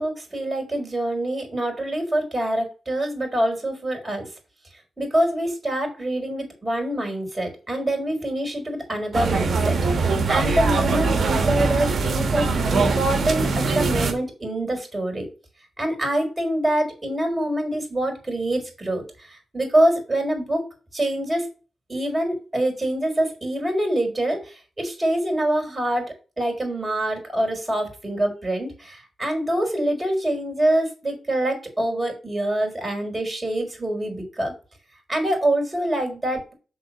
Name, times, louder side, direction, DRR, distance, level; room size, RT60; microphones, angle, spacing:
voice 1, 0.0-4.3 5.0-15.3 15.8-20.6 20.9-21.5 21.9-34.5 35.1-36.5, right 1 dB, 25° right, 2 dB, 4.1 m, -25 dB
sound 1, 9.1-14.1, right 4 dB, 65° right, 1.8 m, -22 dB
6.2 x 4.1 x 6.4 m, 0.34 s
supercardioid pair, 50°, 0 cm